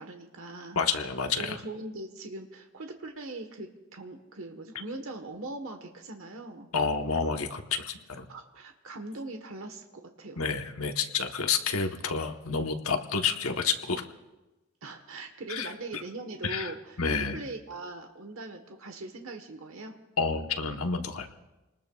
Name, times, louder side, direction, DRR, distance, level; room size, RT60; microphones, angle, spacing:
voice 1, 0.0-0.8 1.4-6.7 8.3-10.5 14.8-20.0, right 2 dB, 70° right, 5 dB, 1.3 m, -41 dB
voice 2, 0.7-1.6 6.7-8.3 10.4-14.0 15.5-16.0 16.4-17.4 20.2-21.3, left 5 dB, 85° left, 5 dB, 1.1 m, -29 dB
28.5 x 20.0 x 2.4 m, 1.1 s
head